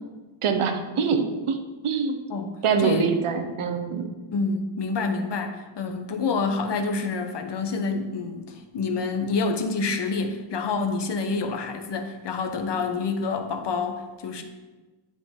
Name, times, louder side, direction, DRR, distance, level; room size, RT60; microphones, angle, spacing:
voice 1, 0.4-2.2 2.6-4.1, right 6 dB, 80° right, 7 dB, 0.9 m, -24 dB
voice 2, 2.8-3.1 4.3-14.4, left 4 dB, 55° left, 5 dB, 0.9 m, -27 dB
9.9 x 4.8 x 3.7 m, 1.2 s
wide cardioid pair, 120°, 50 cm